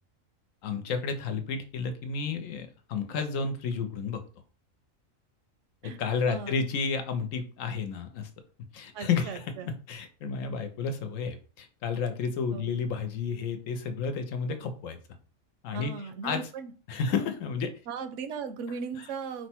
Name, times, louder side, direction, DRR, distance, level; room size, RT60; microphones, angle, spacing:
voice 1, 0.6-4.2 5.8-8.3 8.7-15.0 15.6-15.9 16.2-16.4 16.9-17.7 19.0-19.1, left 5 dB, 85° left, 7 dB, 1.1 m, -31 dB
voice 2, 6.3-6.6 8.9-9.7 12.5-12.7 15.7-16.7 17.9-19.5, right 6 dB, 75° right, 9 dB, 0.9 m, -37 dB
4.7 x 2.2 x 4.3 m, 0.38 s
omnidirectional pair, 1.3 m